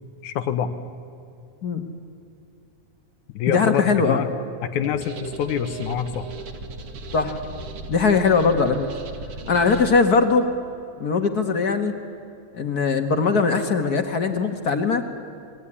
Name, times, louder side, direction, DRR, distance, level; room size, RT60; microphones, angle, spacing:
voice 1, 0.2-0.7 3.3-4.3 4.6-6.3, left 8 dB, 90° left, 10 dB, 2.7 m, -26 dB
voice 2, 3.5-4.2 7.1-7.4 7.9-8.9 9.5-10.5 11.0-11.9 12.5-15.0, left 4 dB, 45° left, 6 dB, 1.3 m, -20 dB
sound 1, 4.8-10.0, right 3 dB, 50° right, 2.5 m, -37 dB
29.0 x 20.5 x 9.9 m, 2.5 s
omnidirectional pair, 3.4 m